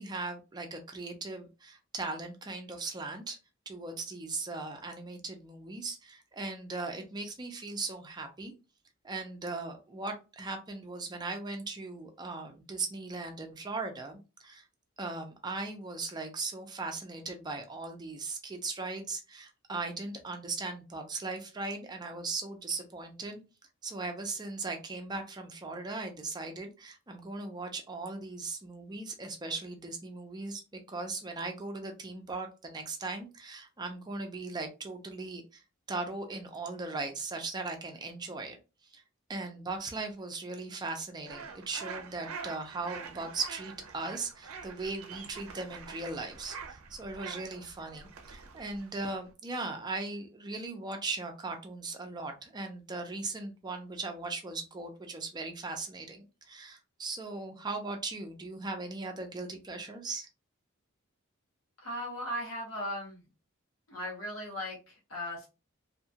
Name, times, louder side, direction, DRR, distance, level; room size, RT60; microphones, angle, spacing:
voice 1, 0.0-3.4 3.7-8.5 9.0-14.7 15.0-23.4 23.8-35.6 35.9-39.0 39.3-60.3, right 3 dB, 20° right, 4 dB, 0.4 m, -38 dB
sound 1, 41.3-49.3, right 5 dB, 85° right, 0.5 m, -45 dB
voice 2, 61.8-63.2 63.9-65.5, equal, 75° left, -3 dB, 0.9 m, -37 dB
2.8 x 2.3 x 2.7 m, 0.30 s
head